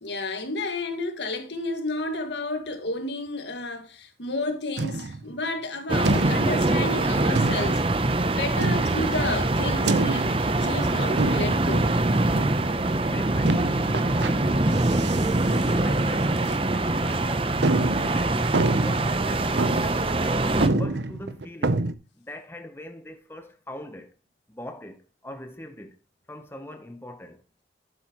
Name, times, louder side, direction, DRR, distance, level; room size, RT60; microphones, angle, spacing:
voice 1, 0.0-7.8 8.2-11.9, left 2 dB, 90° left, 1.9 m, -31 dB
sound 1, 4.8-5.3 6.0-6.7 7.3-7.9 8.6-9.2 9.9-10.5 11.2-11.7 12.3-12.7 13.4-14.3 14.7-15.3 15.6-15.7 16.4-16.5 17.0-17.1 17.6-19.2 19.6-20.0 20.3-20.4 20.6-21.9, right 2 dB, 85° right, 0.7 m, -26 dB
sound 2, 5.9-20.7, right 2 dB, 30° right, 0.7 m, -24 dB
voice 2, 13.0-18.4 18.8-20.1 20.7-21.8 22.2-24.2 24.5-26.0 26.3-27.4, left 1 dB, 15° left, 0.9 m, -42 dB
11.5 x 8.0 x 3.0 m
head